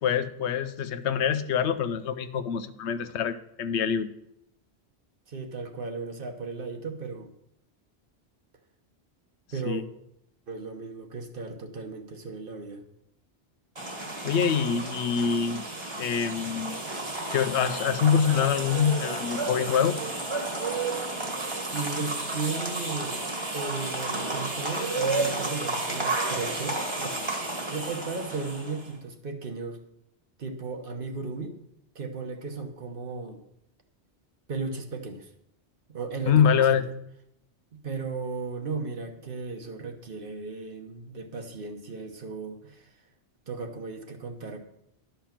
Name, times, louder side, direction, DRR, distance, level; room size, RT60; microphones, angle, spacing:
voice 1, 0.0-4.1 9.6-9.8 14.2-15.7 16.0-16.8 17.3-19.9 36.3-36.8, left 7 dB, 85° left, 12 dB, 0.9 m, -25 dB
voice 2, 5.3-7.3 9.5-9.9 10.5-12.8 21.2-21.4 21.7-23.2 23.5-29.8 30.4-31.6 31.9-33.4 34.5-35.3 35.9-36.9 37.7-42.9 43.5-44.6, right 4 dB, 55° right, 5 dB, 1.2 m, -36 dB
sound 1, 13.8-28.9, right 2 dB, 25° right, 1.4 m, -32 dB
11.5 x 5.8 x 5.9 m, 0.78 s
omnidirectional pair, 1.1 m